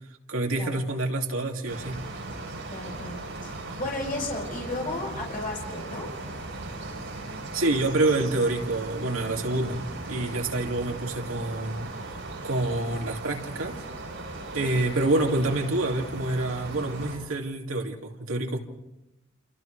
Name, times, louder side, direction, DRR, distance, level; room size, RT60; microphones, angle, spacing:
voice 1, 0.3-2.0 7.5-11.9 12.4-13.8 14.5-18.6, right 2 dB, 85° right, 1 dB, 2.7 m, -27 dB
sound 1, 1.7-17.2, right 2 dB, 65° right, 7.7 m, -38 dB
voice 2, 2.7-6.1 14.5-14.9, left 2 dB, 45° left, -2 dB, 6.5 m, -34 dB
29.0 x 28.5 x 3.4 m, 0.94 s
head